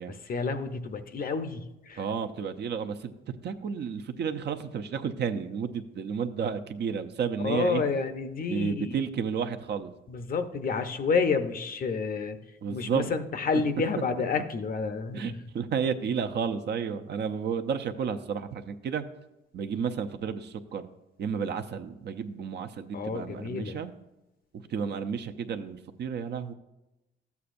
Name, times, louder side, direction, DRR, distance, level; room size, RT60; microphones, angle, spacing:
voice 1, 0.1-2.0 7.4-8.9 10.1-12.4 12.7-15.3 22.9-23.8, left 5 dB, 45° left, 9 dB, 0.7 m, -29 dB
voice 2, 2.0-3.1 3.4-7.8 8.5-9.9 12.6-13.1 15.1-19.0 19.5-20.9 21.2-23.9 24.5-26.5, right 6 dB, 60° right, 8 dB, 0.7 m, -32 dB
12.5 x 8.3 x 2.6 m, 0.96 s
cardioid pair, 90°, 20 cm